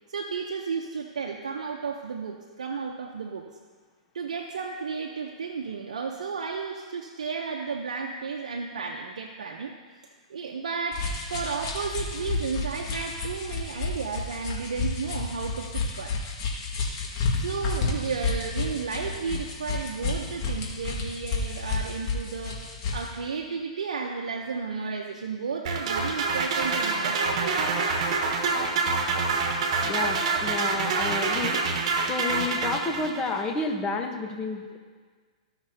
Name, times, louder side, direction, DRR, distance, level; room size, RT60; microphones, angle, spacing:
voice 1, 0.1-3.5 4.1-9.7 10.3-16.2 17.4-22.6 22.9-27.7, right 5 dB, 80° right, 2 dB, 0.7 m, -33 dB
sound 1, 10.9-23.1, left 4 dB, 50° left, 1.8 m, -31 dB
sound 2, 25.7-33.4, right 4 dB, 60° right, 1.2 m, -26 dB
voice 2, 29.8-31.6 32.0-34.8, left 3 dB, 20° left, 2 dB, 1.0 m, -30 dB
15.0 x 5.9 x 2.8 m, 1.5 s
hypercardioid pair, 120°, 4 cm